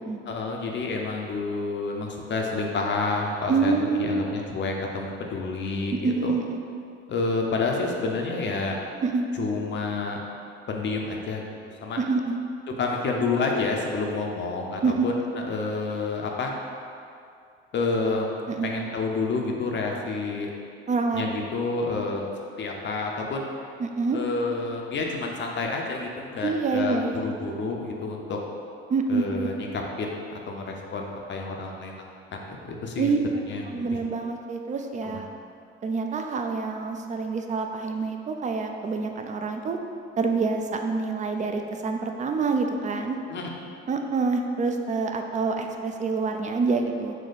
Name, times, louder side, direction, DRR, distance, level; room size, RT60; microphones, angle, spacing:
voice 1, 0.3-3.7 4.0-6.3 7.1-8.8 9.4-10.2 10.7-11.4 11.8-12.0 12.8-16.5 17.7-18.3 18.6-20.5 21.1-22.3 22.6-23.5 24.1-27.0 27.2-28.4 29.1-31.9 32.5-33.1 33.5-33.9 35.0-35.2 43.3-43.5, left 3 dB, 40° left, 1 dB, 0.6 m, -29 dB
voice 2, 3.5-4.2 5.9-6.6 9.0-9.3 12.0-12.4 14.8-15.1 18.5-18.7 20.9-21.2 23.8-24.2 26.4-27.2 28.9-29.4 33.0-33.2 33.7-35.3 35.8-39.8 40.2-43.2 43.9-47.1, right 4 dB, 25° right, 4 dB, 0.4 m, -26 dB
4.4 x 2.3 x 3.9 m, 2.4 s
hypercardioid pair, 60°, 30 cm